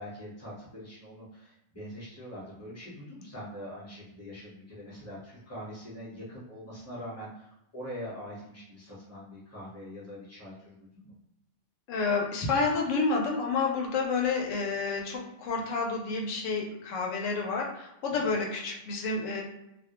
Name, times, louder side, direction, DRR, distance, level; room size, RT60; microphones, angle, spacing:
voice 1, 0.0-11.1 18.1-18.4, equal, 15° left, -7 dB, 0.8 m, -43 dB
voice 2, 11.9-19.4, left 4 dB, 80° left, 0 dB, 1.0 m, -29 dB
2.3 x 2.1 x 2.9 m, 0.85 s
omnidirectional pair, 1.3 m